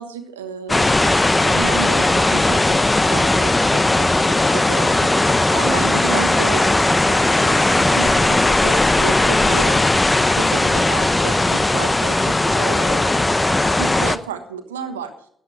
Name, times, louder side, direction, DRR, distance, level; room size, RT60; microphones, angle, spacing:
voice 1, 0.0-9.8 10.4-13.1 13.7-15.1, right 7 dB, 90° right, 7 dB, 1.2 m, -32 dB
sound 1, 0.7-14.2, left 2 dB, 20° left, 0.9 m, -17 dB
13.5 x 10.5 x 5.9 m, 0.66 s
hypercardioid pair, 45°, 0 cm